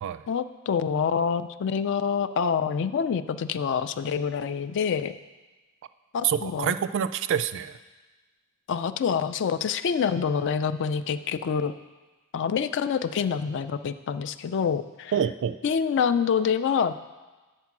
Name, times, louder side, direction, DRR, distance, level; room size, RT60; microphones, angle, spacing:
voice 1, 0.3-5.1 6.1-6.7 8.7-11.7 12.3-15.1 15.6-16.9, left 6 dB, 60° left, 12 dB, 0.3 m, -26 dB
voice 2, 6.2-7.8 15.1-15.6, right 8 dB, 60° right, 12 dB, 0.3 m, -27 dB
8.4 x 4.5 x 6.0 m, 1.2 s
head